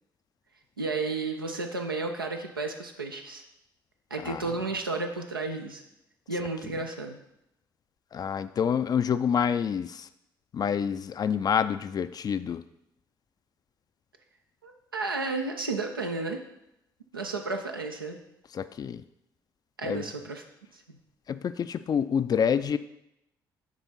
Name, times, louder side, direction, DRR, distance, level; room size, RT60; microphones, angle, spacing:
voice 1, 0.8-3.4 4.1-5.8 6.3-7.2 14.6-16.4 17.1-18.2 19.8-20.4 20.7-21.0, right 3 dB, 85° right, 3 dB, 0.5 m, -32 dB
voice 2, 8.1-10.1 10.5-12.6 18.5-19.0 19.8-20.0 21.3-22.8, left 7 dB, 35° left, 13 dB, 0.4 m, -27 dB
9.1 x 3.7 x 4.1 m, 0.84 s
figure-of-eight pair, 45°, 11 cm